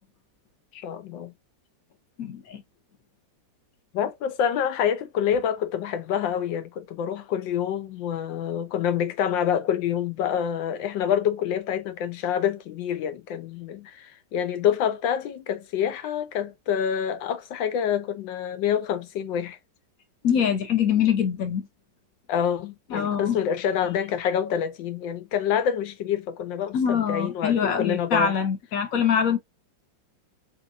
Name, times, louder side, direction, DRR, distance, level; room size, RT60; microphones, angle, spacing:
voice 1, 0.7-1.3 3.9-19.6 22.3-28.4, left 8 dB, 85° left, 1.5 m, -27 dB
voice 2, 2.2-2.6 20.2-21.7 22.9-23.4 26.7-29.4, left 7 dB, 60° left, 1.1 m, -24 dB
4.3 x 3.5 x 2.4 m
omnidirectional pair, 2.0 m